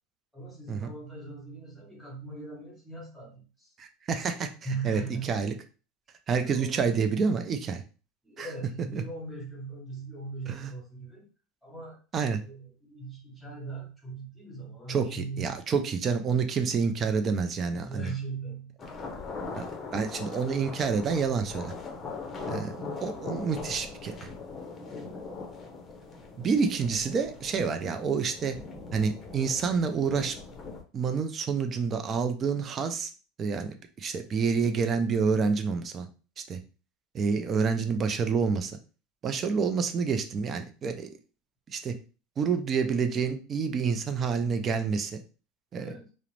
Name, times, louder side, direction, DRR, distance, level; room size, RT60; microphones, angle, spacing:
voice 1, 0.3-3.7 4.6-5.4 6.3-6.9 8.2-11.3 11.6-15.6 17.7-18.7 25.0-25.3 45.8-46.1, right 4 dB, 5° left, -1 dB, 1.1 m, -40 dB
voice 2, 3.8-4.5 4.8-5.5 6.3-7.8 8.4-8.5 8.9-9.0 10.5-10.7 12.1-12.4 14.9-18.1 19.6-21.7 22.5-24.3 26.4-28.6 28.9-30.4 30.9-33.1 33.4-36.1 36.5-36.6 37.1-38.7 39.2-41.1 41.7-41.9 42.4-45.2 45.7-45.9, right 5 dB, 35° right, 7 dB, 0.4 m, -28 dB
sound 1, 18.8-30.8, left 4 dB, 25° left, 0.7 m, -40 dB
2.4 x 2.0 x 3.1 m, 0.35 s
supercardioid pair, 115°, 0 cm